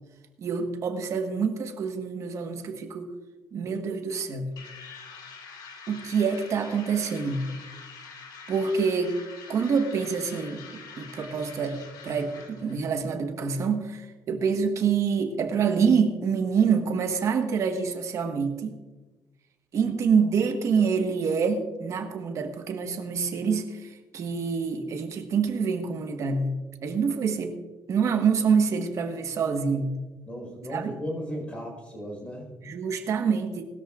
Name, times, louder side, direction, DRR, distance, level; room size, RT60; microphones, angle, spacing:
voice 1, 0.4-3.1 3.5-4.5 5.9-7.4 8.5-9.1 9.5-18.7 19.7-26.5 26.8-27.5 27.9-29.9 30.7-30.9 32.6-33.6, right 6 dB, 45° right, 5 dB, 1.4 m, -26 dB
sound 1, 4.6-12.8, left 5 dB, 85° left, 2.2 m, -45 dB
voice 2, 30.2-32.5, equal, 15° left, 1 dB, 4.6 m, -35 dB
20.0 x 13.0 x 2.5 m, 1.2 s
cardioid pair, 165°, 7 cm